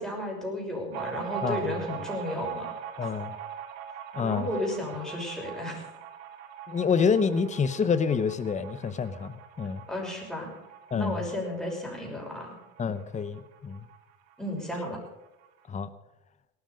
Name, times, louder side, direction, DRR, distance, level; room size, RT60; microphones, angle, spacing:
voice 1, 0.0-2.7 3.0-3.1 4.2-5.9 9.9-10.5 10.9-12.5 14.4-15.0, left 1 dB, ahead, -1 dB, 5.8 m, -33 dB
sound 1, 0.9-14.0 14.3-14.4 14.7-15.5, right 8 dB, 85° right, 2.0 m, -41 dB
voice 2, 1.4-2.0 3.0-3.3 4.1-4.5 6.7-9.8 10.9-11.2 12.8-13.8 15.7-15.9, left 6 dB, 20° left, 12 dB, 0.9 m, -28 dB
18.0 x 13.0 x 5.2 m, 0.96 s
supercardioid pair, 125°, 40 cm